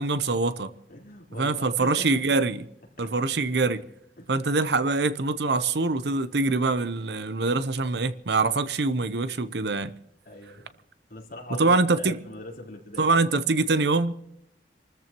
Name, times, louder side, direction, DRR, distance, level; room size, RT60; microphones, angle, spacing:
voice 1, 0.0-0.7 1.3-2.6 3.0-3.9 4.3-9.9 11.6-12.2 13.0-14.1, right 3 dB, 65° right, 0.8 m, -24 dB
voice 2, 0.9-2.4 3.0-3.4 4.2-4.3 10.2-10.7 11.1-13.1, left 1 dB, 55° left, 4.2 m, -42 dB
27.5 x 14.0 x 3.0 m
head